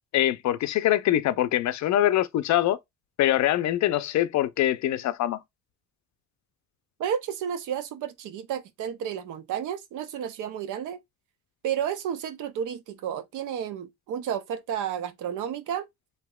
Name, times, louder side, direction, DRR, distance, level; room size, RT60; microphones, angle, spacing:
voice 1, 0.1-2.8 3.2-5.4, left 13 dB, 65° left, 0.5 m, -23 dB
voice 2, 7.0-11.0 11.6-15.9, right 9 dB, 80° right, 0.6 m, -31 dB
3.5 x 2.7 x 2.2 m
cardioid pair, 90°, 30 cm